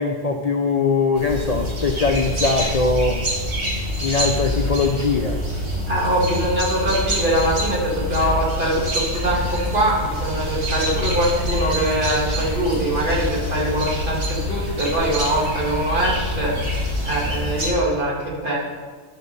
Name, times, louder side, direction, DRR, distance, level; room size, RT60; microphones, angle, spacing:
voice 1, 0.0-3.2 4.0-5.4, left 4 dB, 45° left, 2 dB, 0.6 m, -21 dB
sound 1, 1.1-17.7, left 1 dB, 75° right, 2.0 m, -26 dB
voice 2, 5.9-18.6, right 1 dB, 50° right, -5 dB, 2.4 m, -23 dB
11.0 x 4.4 x 6.6 m, 1.5 s
omnidirectional pair, 1.1 m